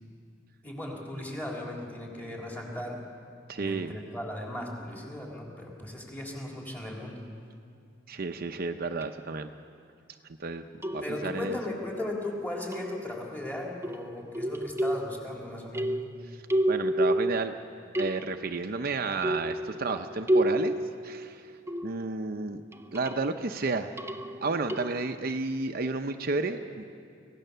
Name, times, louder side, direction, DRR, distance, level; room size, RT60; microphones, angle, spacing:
voice 1, 0.6-3.0 3.6-7.2 11.0-16.0, left 1 dB, 10° left, -2 dB, 3.7 m, -37 dB
voice 2, 3.5-4.0 8.1-9.5 10.4-10.6 10.9-11.6 16.3-16.4 16.7-17.5 18.0-20.7 21.0-21.5 21.8-22.6 22.9-23.9 24.4-26.8, right 3 dB, 55° right, 6 dB, 0.7 m, -31 dB
sound 1, 9.0-9.1 10.8-11.4 12.7-13.3 13.8-15.4 15.7-17.6 17.9-18.6 19.2-22.2 22.7-23.3 24.0-25.1, right 1 dB, 15° right, 0.6 m, -30 dB
25.0 x 17.0 x 6.8 m, 2.4 s
head